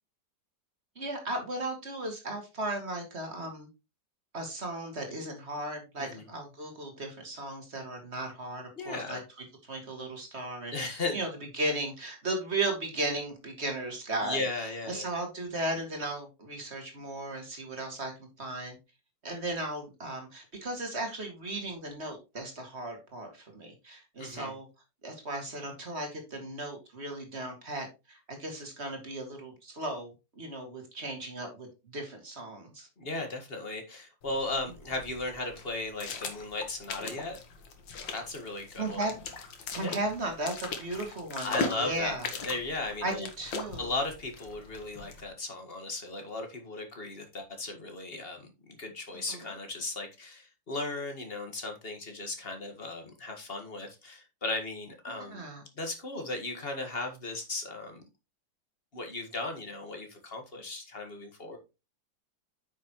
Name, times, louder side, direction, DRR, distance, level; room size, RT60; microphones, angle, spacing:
voice 1, 1.0-3.7 4.3-9.2 9.7-11.3 11.5-18.8 19.2-24.7 25.0-30.1 30.4-31.7 31.9-32.9 38.8-39.1 39.7-42.3 43.0-43.9 49.3-49.5 55.2-55.6, right 2 dB, 35° right, 2.3 m, -36 dB
voice 2, 8.8-9.2 10.7-11.2 14.2-15.1 24.2-24.5 33.0-37.4 38.1-39.1 39.8-40.0 41.4-43.3 43.8-55.5 55.8-58.0 58.9-61.6, left 2 dB, 30° left, 1.8 m, -36 dB
sound 1, 34.2-45.3, left 4 dB, 75° left, 2.1 m, -40 dB
9.1 x 6.4 x 3.0 m
omnidirectional pair, 2.0 m